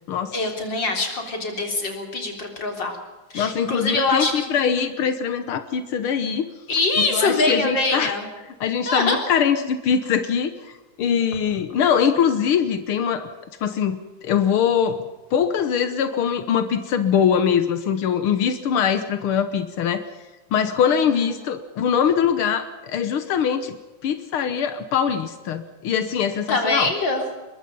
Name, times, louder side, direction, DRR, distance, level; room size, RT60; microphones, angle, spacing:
voice 1, 0.3-3.0 3.3-4.3 6.7-8.2 8.9-9.2 20.9-21.0 26.5-27.2, left 3 dB, 55° left, 3 dB, 4.3 m, -23 dB
voice 2, 3.3-6.5 7.1-8.1 8.6-13.3 13.6-14.0 14.2-15.0 15.3-20.0 20.5-23.8 24.0-26.9, left 7 dB, 80° left, 10 dB, 2.0 m, -22 dB
22.5 x 22.0 x 5.5 m, 1.2 s
omnidirectional pair, 2.3 m